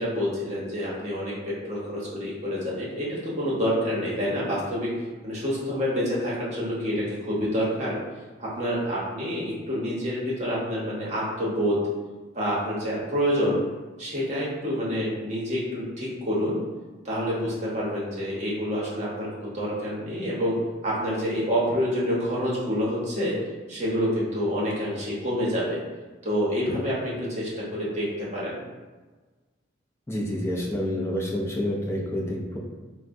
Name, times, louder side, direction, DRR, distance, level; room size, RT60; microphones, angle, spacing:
voice 1, 0.0-4.9 5.2-8.0 8.4-11.8 12.3-13.6 14.0-16.6 17.0-20.5 20.8-23.3 23.7-25.8 26.2-28.6, equal, 35° right, -6 dB, 0.8 m, -27 dB
voice 2, 30.1-32.6, left 1 dB, 15° left, -2 dB, 0.4 m, -28 dB
3.5 x 2.1 x 2.5 m, 1.3 s
head